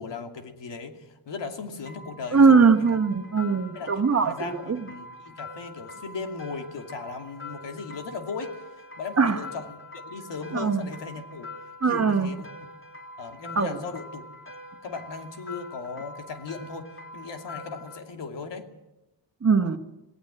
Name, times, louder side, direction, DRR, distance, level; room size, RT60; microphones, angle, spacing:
voice 1, 0.0-2.9 3.7-8.6 9.0-11.5 11.8-12.5 13.2-14.2 14.8-18.7, left 4 dB, 80° left, 4 dB, 2.7 m, -37 dB
sound 1, 1.9-18.0, left 2 dB, 30° left, 4.2 m, -44 dB
voice 2, 2.3-4.8 9.2-9.4 10.5-10.8 11.8-12.3 13.5-13.8 19.4-19.8, right 5 dB, 35° right, 8 dB, 1.6 m, -21 dB
19.0 x 18.0 x 8.9 m, 0.97 s
cardioid pair, 80°, 42 cm